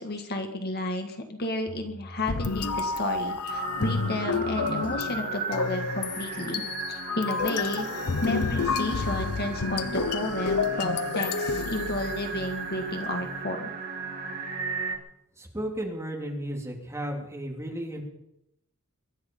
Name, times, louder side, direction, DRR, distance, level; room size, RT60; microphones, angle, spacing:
voice 1, 0.0-13.7, left 1 dB, 45° left, 5 dB, 1.7 m, -32 dB
sound 1, 1.7-3.6, equal, 80° right, 6.0 m, -48 dB
sound 2, 2.3-12.6, left 4 dB, 85° left, 0.8 m, -30 dB
sound 3, 3.5-15.0, right 4 dB, 45° right, 2.7 m, -36 dB
voice 2, 15.4-18.0, right 1 dB, 10° right, -1 dB, 3.0 m, -34 dB
23.0 x 11.0 x 5.5 m, 0.84 s
head